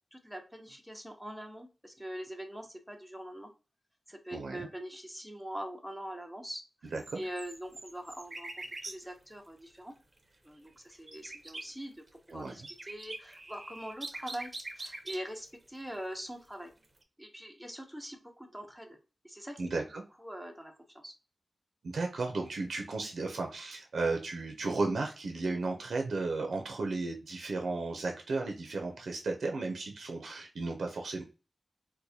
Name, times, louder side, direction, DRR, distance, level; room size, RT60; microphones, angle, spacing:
voice 1, 0.1-3.5 4.1-6.9 7.1-9.9 10.4-11.9 12.3-16.7 17.2-19.0 19.2-19.6 20.2-21.1, equal, ahead, 3 dB, 0.7 m, -43 dB
voice 2, 4.3-4.7 6.9-7.2 12.3-12.6 19.6-20.0 21.8-31.2, right 3 dB, 90° right, 2 dB, 0.5 m, -34 dB
sound 1, 6.8-8.9 10.7-11.6 12.1-15.2 16.0-16.2 17.0-17.1, right 2 dB, 35° right, 0.6 m, -43 dB
4.5 x 2.1 x 2.7 m, 0.32 s
wide cardioid pair, 115°, 0 cm